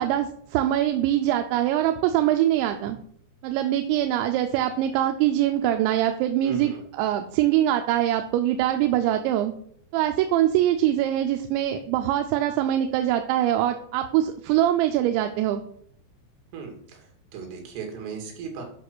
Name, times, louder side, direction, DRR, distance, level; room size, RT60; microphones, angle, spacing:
voice 1, 0.0-3.0 3.4-9.5 9.9-15.6, right 12 dB, 80° right, 6 dB, 2.9 m, -23 dB
voice 2, 6.4-6.8 16.5-17.1 17.3-18.6, right 6 dB, 65° right, 2 dB, 4.2 m, -36 dB
11.0 x 5.7 x 6.1 m, 0.64 s
omnidirectional pair, 5.4 m